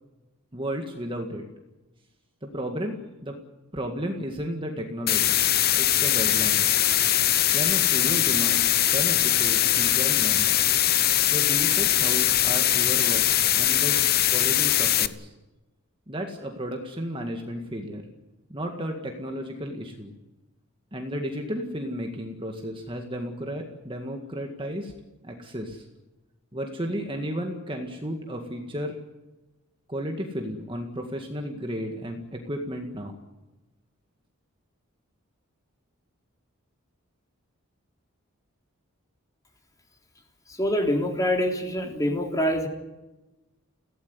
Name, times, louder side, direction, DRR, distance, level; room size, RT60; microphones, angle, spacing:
voice 1, 0.5-1.4 2.4-3.4 3.7-5.4 5.7-6.8 7.5-10.7 11.3-13.2 13.6-14.0 14.3-15.3 16.1-18.0 18.5-20.1 20.9-24.9 25.2-25.9 26.5-29.0 29.9-33.1, equal, 25° right, 3 dB, 1.9 m, -33 dB
sound 1, 5.1-15.1, left 13 dB, 45° left, 0.8 m, -21 dB
voice 2, 40.6-42.7, equal, 15° left, 2 dB, 3.6 m, -25 dB
23.0 x 16.5 x 9.6 m, 1.1 s
head